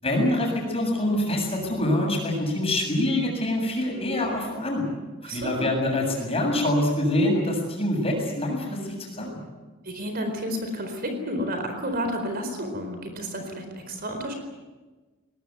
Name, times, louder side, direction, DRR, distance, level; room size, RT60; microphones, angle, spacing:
voice 1, 0.0-4.9 5.2-9.4, left 1 dB, 30° left, 0 dB, 7.4 m, -25 dB
voice 2, 5.2-5.7 9.8-14.4, equal, 45° right, 5 dB, 4.3 m, -31 dB
22.5 x 19.5 x 9.6 m, 1.2 s
head